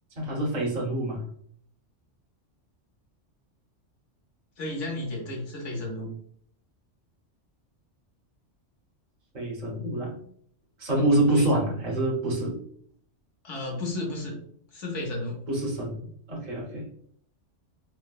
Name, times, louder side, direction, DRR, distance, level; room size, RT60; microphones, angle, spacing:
voice 1, 0.2-1.3 9.3-10.2 10.8-12.6 15.5-16.9, right 1 dB, 40° right, -2 dB, 0.9 m, -26 dB
voice 2, 4.6-6.1 11.4-11.7 13.4-14.4 14.7-15.4, left 2 dB, 80° left, 1 dB, 1.2 m, -33 dB
4.5 x 2.1 x 2.3 m, 0.62 s
omnidirectional pair, 1.2 m